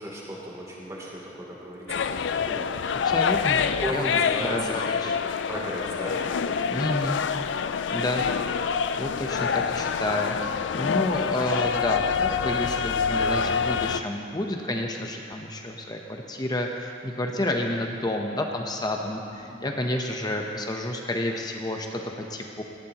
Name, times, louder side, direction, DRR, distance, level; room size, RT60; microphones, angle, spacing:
voice 1, 0.0-2.7 3.8-5.1 5.5-6.2 19.1-19.7, right 1 dB, 20° right, -5 dB, 3.0 m, -36 dB
sound 1, 1.9-14.0, left 6 dB, 75° left, 0.4 m, -26 dB
voice 2, 3.0-3.6 3.9-5.2 6.7-7.2 7.9-8.3 9.0-10.4 10.7-22.6, left 1 dB, 20° left, 2 dB, 0.9 m, -30 dB
18.0 x 15.5 x 3.0 m, 2.6 s
head